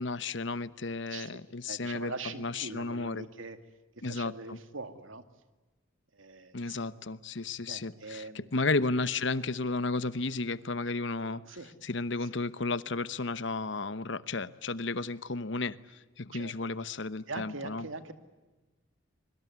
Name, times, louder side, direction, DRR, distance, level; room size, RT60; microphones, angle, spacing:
voice 1, 0.0-2.1 2.4-3.2 4.0-4.3 6.5-8.2 8.5-11.4 11.8-15.8 16.2-17.9, left 3 dB, 60° left, 16 dB, 1.0 m, -33 dB
voice 2, 1.0-3.6 4.0-5.2 6.1-6.8 7.7-8.6 11.4-11.7 12.2-12.3 16.3-16.6 17.3-18.1, right 3 dB, 75° right, 9 dB, 2.3 m, -42 dB
25.5 x 24.0 x 9.5 m, 1.2 s
head